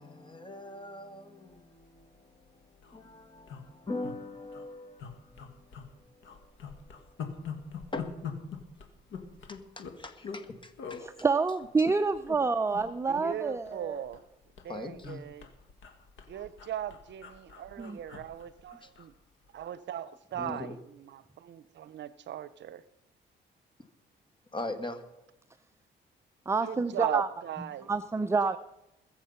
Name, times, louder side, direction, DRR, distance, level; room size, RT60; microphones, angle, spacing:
voice 1, 0.0-7.4 7.6-8.4 9.5-11.0 14.7-15.4 18.8-18.9 20.4-20.8 24.5-25.0, left 2 dB, 25° left, 1.9 m, -42 dB
sound 1, 2.0-2.2 2.5-2.6 2.7-3.0 3.5-4.1 4.5-4.6 5.0-5.9 6.2-10.4 10.8-11.0 11.6-12.4 12.7-12.9 13.1-14.3 14.6-19.1 19.5-19.6, left 6 dB, 75° left, 2.1 m, -43 dB
voice 2, 11.0-14.0 17.8-18.0 26.5-27.3 27.9-28.6, right 4 dB, 15° right, 0.5 m, -28 dB
voice 3, 13.1-14.2 14.6-15.5 16.3-19.1 19.5-22.8 26.6-27.9 28.4-28.6, right 11 dB, 65° right, 0.7 m, -39 dB
21.5 x 7.4 x 5.7 m
cardioid pair, 90°, 20 cm